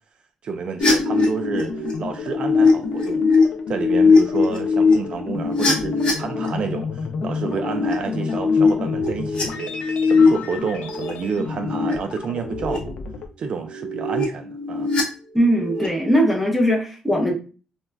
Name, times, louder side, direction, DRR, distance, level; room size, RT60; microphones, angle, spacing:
voice 1, 0.4-3.2 3.7-12.9 13.4-14.9, right 5 dB, 55° right, 0.3 m, -30 dB
sound 1, 0.8-6.5 7.3-9.4 9.7-10.3 10.7-11.1 11.4-11.9 12.3-12.8 13.7-15.0 15.4-15.9, left 4 dB, 50° left, 0.7 m, -20 dB
sound 2, 1.4-13.3, left 5 dB, 75° left, 0.4 m, -32 dB
voice 2, 15.3-17.3, equal, ahead, 0.6 m, -19 dB
2.2 x 2.1 x 3.3 m
cardioid pair, 130°, 2 cm